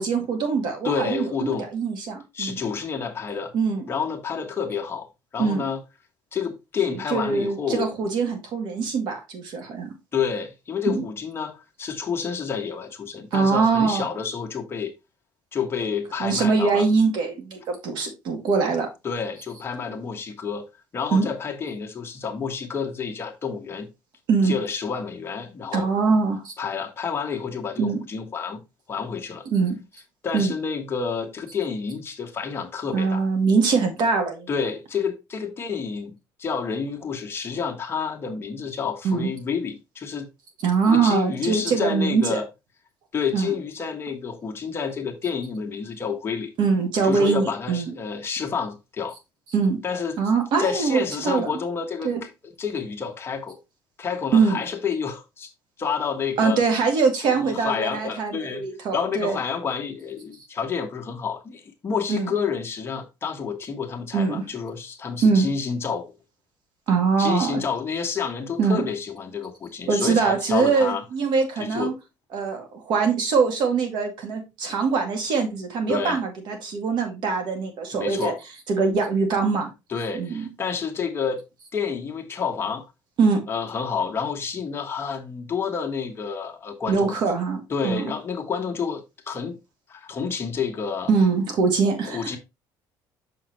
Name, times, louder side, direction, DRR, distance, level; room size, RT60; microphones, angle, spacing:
voice 1, 0.0-2.6 3.5-3.8 5.4-5.7 6.9-9.9 10.9-11.0 13.3-14.1 16.2-18.9 21.1-21.3 24.3-24.6 25.7-26.5 27.8-28.0 29.5-29.8 30.3-30.5 32.9-34.5 39.0-39.3 40.6-42.4 43.3-43.5 46.6-47.9 49.5-49.8 50.2-51.5 52.0-52.2 54.3-54.6 56.4-59.4 62.1-62.3 64.1-64.5 65.2-65.5 66.9-67.6 68.6-68.9 69.9-71.9 72.3-78.3 78.7-79.7 80.1-80.5 83.2-83.4 86.9-88.1 91.1-92.4, right 5 dB, 65° right, 2.2 m, -23 dB
voice 2, 0.8-1.7 2.3-3.5 3.9-5.1 5.3-5.8 6.3-7.9 10.1-14.9 15.5-16.8 19.0-20.6 20.9-23.9 24.4-25.9 26.6-28.6 28.9-29.4 30.2-33.2 34.5-40.3 40.9-42.4 43.1-46.5 47.0-49.2 49.8-50.2 50.6-53.6 54.0-55.5 55.8-56.6 57.2-58.6 58.9-66.1 67.2-71.0 71.6-72.0 75.9-76.2 77.9-78.4 79.9-81.4 81.7-82.9 83.5-87.2 87.7-89.6 89.9-91.1 91.8-92.4, left 6 dB, 30° left, 1.3 m, -29 dB
6.3 x 5.8 x 3.1 m
cardioid pair, 130°, 8 cm